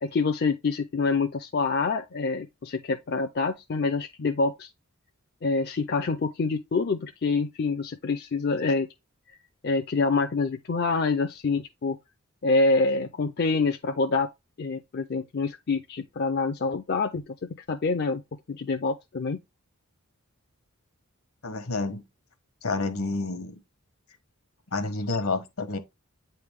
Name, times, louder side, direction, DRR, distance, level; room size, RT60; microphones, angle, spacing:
voice 1, 0.0-4.7 5.4-8.9 9.3-9.4 9.6-12.0 12.4-14.3 14.6-17.2 17.7-18.2 18.5-19.4, left 3 dB, 45° left, 0.5 m, -26 dB
voice 2, 21.4-22.1 22.6-23.6 24.7-25.8, left 3 dB, 70° left, 1.1 m, -29 dB
8.6 x 3.4 x 3.4 m
head